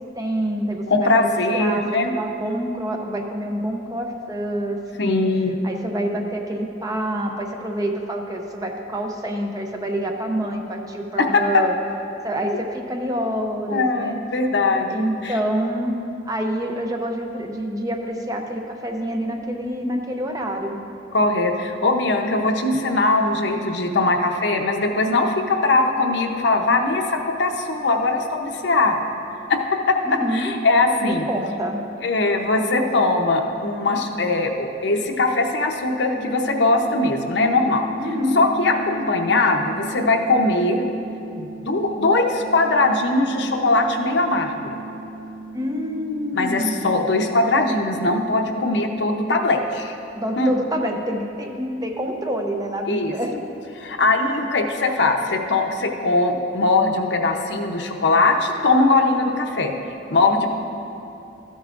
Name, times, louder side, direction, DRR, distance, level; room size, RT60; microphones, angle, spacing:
voice 1, 0.0-1.1 1.5-1.8 2.2-5.3 5.6-11.7 12.2-14.2 14.7-16.0 16.3-20.8 30.1-30.5 31.0-31.8 38.0-38.4 45.5-46.8 50.1-53.3 60.3-60.5, equal, 20° right, 2 dB, 0.6 m, -27 dB
voice 2, 0.9-2.1 5.0-5.6 11.2-11.6 13.7-15.3 21.1-29.0 29.5-29.6 29.9-30.0 30.3-31.3 32.0-37.9 38.3-40.8 41.4-44.7 46.3-49.9 50.4-50.5 52.9-53.1 53.8-59.7 60.1-60.5, left 2 dB, 70° left, 3 dB, 0.7 m, -20 dB
sound 1, 36.1-48.1, right 2 dB, 85° right, 0.9 m, -37 dB
14.0 x 9.4 x 2.5 m, 2.8 s
head